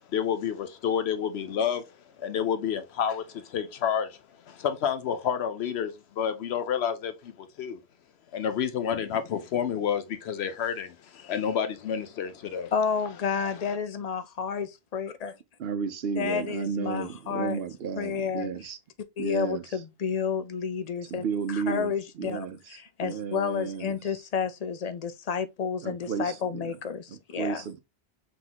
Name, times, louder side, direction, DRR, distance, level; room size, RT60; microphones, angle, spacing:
voice 1, 0.1-1.8 2.2-4.2 4.5-7.8 8.3-12.7, left 8 dB, 85° left, 0.9 m, -29 dB
voice 2, 12.7-15.4 16.2-17.6 18.0-18.5 19.2-27.6, left 6 dB, 50° left, 0.5 m, -31 dB
voice 3, 15.6-18.8 19.2-19.6 21.1-24.0 25.8-26.8 27.1-27.8, right 6 dB, 70° right, 0.9 m, -33 dB
3.9 x 3.7 x 2.8 m
omnidirectional pair, 1.1 m